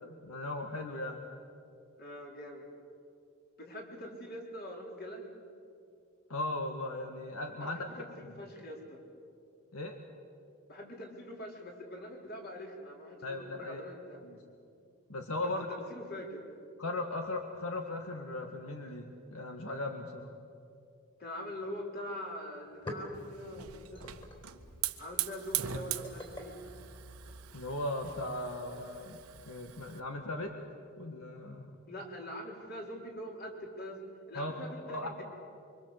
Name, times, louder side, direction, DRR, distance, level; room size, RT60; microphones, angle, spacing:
voice 1, 0.2-1.2 6.3-7.8 9.7-10.0 13.2-13.9 14.2-14.4 15.1-15.7 16.8-20.3 27.5-30.5 31.0-31.8 34.3-35.2, left 2 dB, 75° left, 4 dB, 1.8 m, -38 dB
voice 2, 2.0-2.7 3.6-5.3 7.6-9.0 10.7-14.2 15.4-16.5 21.2-24.1 25.0-26.6 31.9-35.2, equal, 45° left, 1 dB, 4.3 m, -44 dB
sound 1, 22.1-22.2 22.5-27.7, left 1 dB, 25° left, 4.2 m, -48 dB
Hiss / Fire, 23.1-30.0, right 11 dB, 85° right, 1.5 m, -41 dB
25.5 x 25.0 x 8.1 m, 2.5 s
head